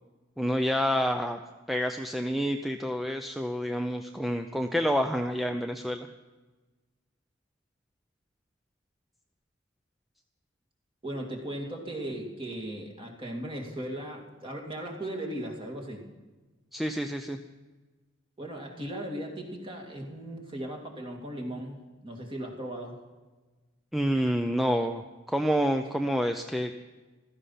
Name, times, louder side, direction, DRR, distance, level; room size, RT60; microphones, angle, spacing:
voice 1, 0.4-1.4 1.7-6.1 16.7-17.4 23.9-26.7, equal, ahead, 5 dB, 0.5 m, -28 dB
voice 2, 11.0-16.1 18.4-23.0, right 1 dB, 25° right, 1 dB, 2.5 m, -37 dB
15.5 x 14.0 x 5.7 m, 1.2 s
head